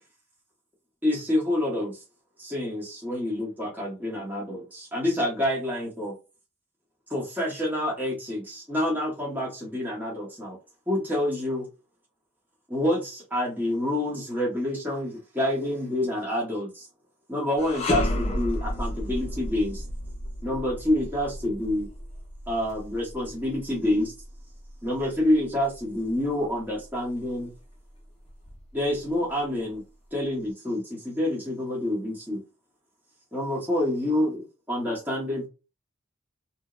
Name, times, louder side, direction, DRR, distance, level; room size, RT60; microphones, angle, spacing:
voice 1, 1.0-2.0 2.4-6.1 7.1-10.6 10.9-11.7 12.7-16.9 17.3-19.8 20.4-21.9 22.5-24.1 24.8-27.5 28.7-29.8 30.1-32.4 33.3-35.5, left 1 dB, 10° right, -6 dB, 0.9 m, -27 dB
sound 1, 17.6-26.8 27.2-27.4 28.3-29.2, left 1 dB, 30° left, 0.6 m, -33 dB
2.8 x 2.1 x 2.2 m, 0.29 s
head